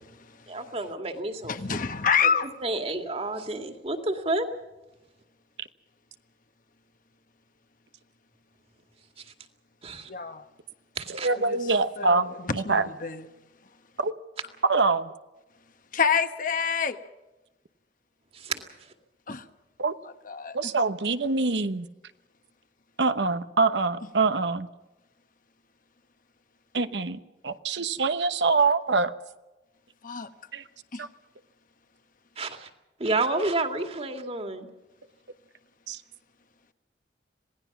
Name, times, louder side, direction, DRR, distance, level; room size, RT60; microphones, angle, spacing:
voice 1, 0.5-1.8 2.2-2.3 2.6-4.5 9.2-9.3 9.8-10.1 11.0-11.3 18.3-18.9 32.4-32.7 33.0-34.7, right 2 dB, 35° right, 2.2 m, -30 dB
voice 2, 1.4-2.5 10.1-10.4 11.3-13.2 15.9-17.0 19.3-19.5 20.2-20.7 24.0-24.1 30.0-30.3 30.9-31.0, left 6 dB, 50° left, 1.3 m, -28 dB
voice 3, 11.1-12.9 14.0-14.1 14.6-15.1 19.8-19.9 20.5-21.9 23.0-24.7 26.7-29.1 30.5-30.6 31.0-31.1 35.9-36.0, right 4 dB, 85° right, 1.1 m, -25 dB
26.5 x 18.5 x 6.0 m
head